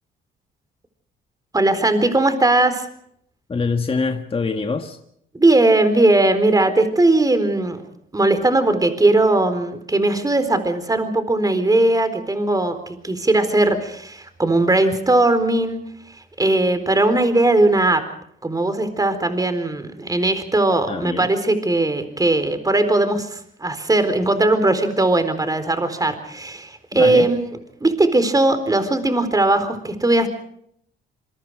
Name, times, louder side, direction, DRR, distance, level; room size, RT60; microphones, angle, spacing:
voice 1, 1.5-2.9 5.3-7.8 8.1-12.8 13.0-15.8 16.4-18.0 18.4-27.5 27.8-30.3, right 2 dB, 20° right, 4.1 m, -18 dB
voice 2, 3.5-5.0 20.9-21.3 26.9-27.3, left 4 dB, 30° left, 1.8 m, -24 dB
27.0 x 23.0 x 4.9 m
cardioid pair, 90°, 20 cm